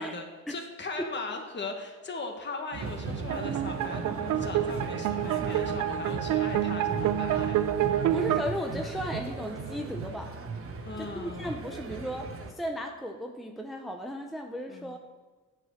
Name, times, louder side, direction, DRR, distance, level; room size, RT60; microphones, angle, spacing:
voice 1, 0.0-7.7 10.8-11.6 14.7-15.0, left 3 dB, 35° left, 3 dB, 1.5 m, -38 dB
sound 1, 2.7-12.5, right 4 dB, 45° right, 1.2 m, -37 dB
sound 2, 3.3-8.4, right 11 dB, 80° right, 0.6 m, -28 dB
voice 2, 8.1-10.3 11.0-15.0, equal, ahead, 3 dB, 0.6 m, -35 dB
9.5 x 5.0 x 6.4 m, 1.3 s
cardioid pair, 90°, 30 cm